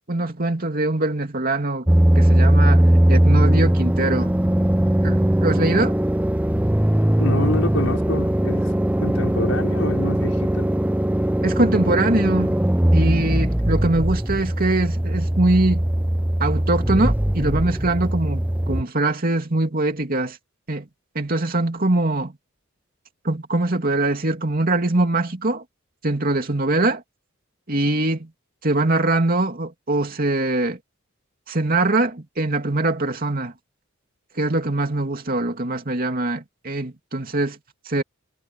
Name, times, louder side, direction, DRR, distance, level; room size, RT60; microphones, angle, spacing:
voice 1, 0.1-1.9 2.1-4.3 5.0-5.9 11.4-12.6 12.9-15.8 16.4-20.4 20.7-20.9 21.1-22.3 23.2-25.6 26.0-27.0 27.7-28.3 28.6-30.8 31.5-33.5 34.4-37.6 37.9-38.0, right 2 dB, 45° right, 2.8 m, -22 dB
sound 1, 1.9-18.8, right 1 dB, 5° right, 0.5 m, -20 dB
voice 2, 7.2-8.7 9.0-10.7, left 1 dB, 90° left, 5.9 m, -27 dB
head